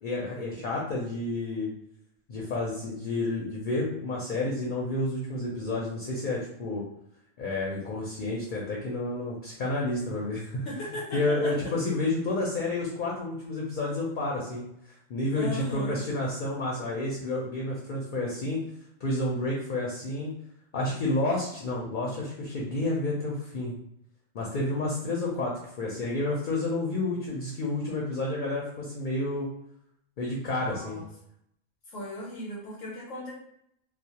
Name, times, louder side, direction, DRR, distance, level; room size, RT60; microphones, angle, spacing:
voice 1, 0.0-1.7 2.3-6.9 7.4-10.7 11.1-14.7 15.1-18.6 19.0-20.3 20.7-23.7 24.3-29.5 30.2-31.0, left 2 dB, 60° left, -3 dB, 0.5 m, -30 dB
voice 2, 10.6-11.7 15.3-16.0 30.6-31.1 31.9-33.3, left 1 dB, 85° left, -4 dB, 1.0 m, -37 dB
2.3 x 2.0 x 2.8 m, 0.76 s
omnidirectional pair, 1.3 m